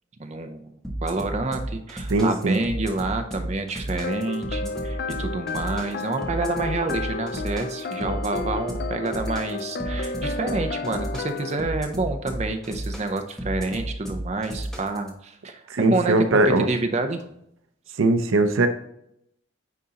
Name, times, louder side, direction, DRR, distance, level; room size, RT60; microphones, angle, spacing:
voice 1, 0.2-16.4 16.7-17.3, right 3 dB, 30° right, 6 dB, 0.5 m, -28 dB
sound 1, 0.8-15.1, right 1 dB, ahead, 1.0 m, -32 dB
voice 2, 2.1-2.6 15.7-16.7 18.0-18.7, right 2 dB, 75° right, 8 dB, 0.6 m, -20 dB
Christmas Melody Loop, 4.0-11.7, left 4 dB, 50° left, 0.3 m, -32 dB
9.4 x 3.8 x 2.8 m, 0.75 s
head